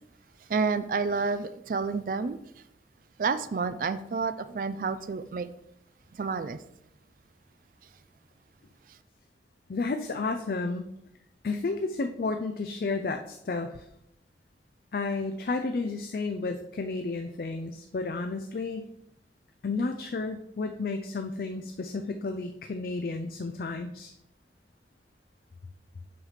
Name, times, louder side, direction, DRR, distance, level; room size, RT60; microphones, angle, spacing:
voice 1, 0.5-2.4 3.2-5.5 6.1-6.6, right 4 dB, 50° right, 12 dB, 0.4 m, -29 dB
voice 2, 9.7-10.9 11.4-13.9 14.9-18.9 19.6-24.1, left 3 dB, 55° left, 6 dB, 0.4 m, -32 dB
7.8 x 3.3 x 5.6 m, 0.79 s
head